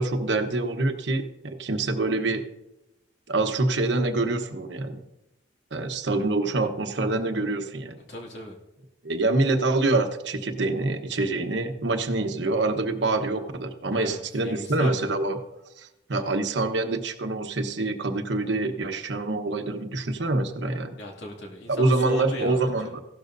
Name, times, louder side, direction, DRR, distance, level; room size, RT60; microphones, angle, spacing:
voice 1, 0.0-2.4 3.3-5.0 5.7-8.0 9.0-15.4 15.8-21.0 21.7-23.0, right 2 dB, 75° right, 6 dB, 1.0 m, -26 dB
voice 2, 8.1-8.6 13.9-15.1 21.0-22.7, left 1 dB, 70° left, -1 dB, 2.4 m, -37 dB
16.0 x 12.0 x 2.6 m, 0.95 s
head